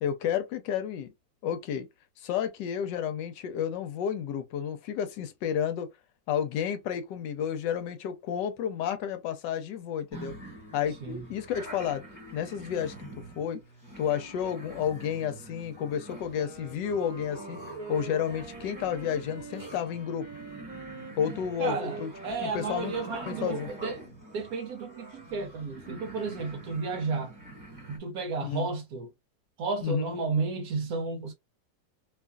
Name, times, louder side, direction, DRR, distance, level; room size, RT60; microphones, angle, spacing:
voice 1, 0.0-1.1 1.4-1.9 2.2-5.9 6.3-10.4 10.7-12.0 12.3-13.6 14.0-20.3 21.2-22.1 22.4-22.9 23.3-23.7 28.4-28.7 29.8-30.1, left 9 dB, 80° left, 1.2 m, -31 dB
sound 1, 10.1-28.0, right 2 dB, 10° right, 1.2 m, -46 dB
Wind instrument woodwind instrument, 16.2-24.2, right 4 dB, 35° right, 1.1 m, -44 dB
voice 2, 21.6-24.0 24.3-27.3 27.9-29.1 29.6-31.3, right 4 dB, 70° right, 0.9 m, -32 dB
2.8 x 2.4 x 2.2 m
omnidirectional pair, 1.9 m